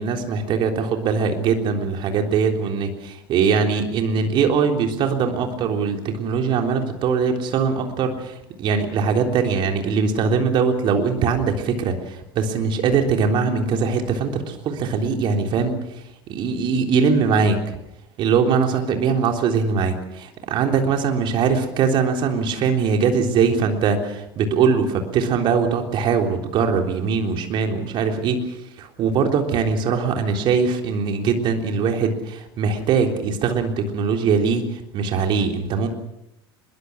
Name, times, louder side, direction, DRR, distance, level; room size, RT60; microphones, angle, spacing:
voice 1, 0.0-15.8 16.3-17.6 18.2-35.9, right 5 dB, 40° right, 4 dB, 3.6 m, -21 dB
24.0 x 22.0 x 6.4 m, 0.84 s
figure-of-eight pair, 75°, 13 cm